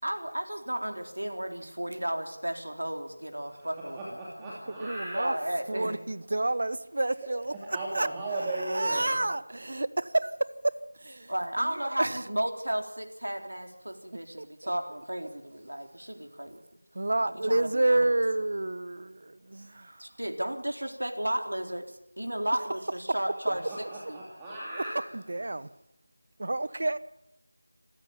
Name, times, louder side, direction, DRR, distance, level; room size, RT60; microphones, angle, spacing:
voice 1, 0.0-4.0 5.1-6.0 11.3-16.6 17.2-18.1 20.0-24.2, right 1 dB, 90° right, 3.8 m, -33 dB
voice 2, 3.4-5.3 7.7-9.2 23.7-25.1 25.5-25.6, right 2 dB, 10° right, 2.6 m, -36 dB
voice 3, 4.4-5.4 5.7-8.1 8.3-11.3 11.6-12.2 14.1-14.7 16.9-20.0 23.1-23.2 24.7-25.7 26.4-27.0, right 2 dB, 50° right, 1.0 m, -30 dB
26.5 x 15.0 x 9.0 m
figure-of-eight pair, 175°, 0 cm